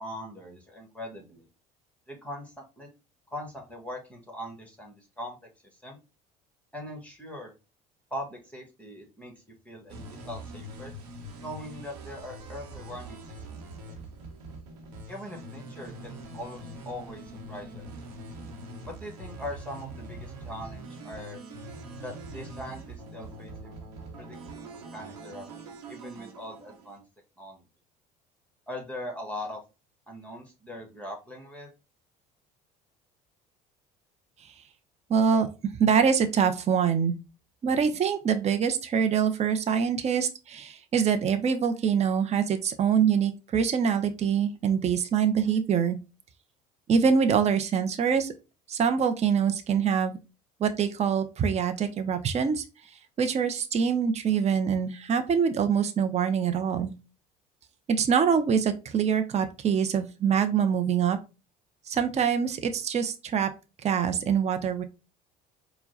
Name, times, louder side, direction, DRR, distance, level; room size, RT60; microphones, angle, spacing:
voice 1, 0.0-1.4 2.1-2.9 3.3-5.4 5.8-6.0 6.7-7.5 8.1-9.3 9.6-10.9 11.4-13.7 15.1-17.2 17.5-17.9 18.9-21.4 22.0-23.8 24.2-27.0 27.4-27.6 28.7-29.6 30.1-31.7, left 1 dB, 5° left, 1 dB, 1.4 m, -41 dB
sound 1, 9.9-27.0, right 1 dB, 85° right, 1.0 m, -43 dB
voice 2, 35.1-35.5 35.8-37.1 37.6-46.0 46.9-48.3 48.7-50.2 50.6-52.6 53.2-56.9 57.9-61.2 61.9-63.5 63.8-64.8, right 7 dB, 35° right, 8 dB, 0.6 m, -24 dB
4.5 x 2.2 x 3.9 m, 0.29 s
hypercardioid pair, 75°, 20 cm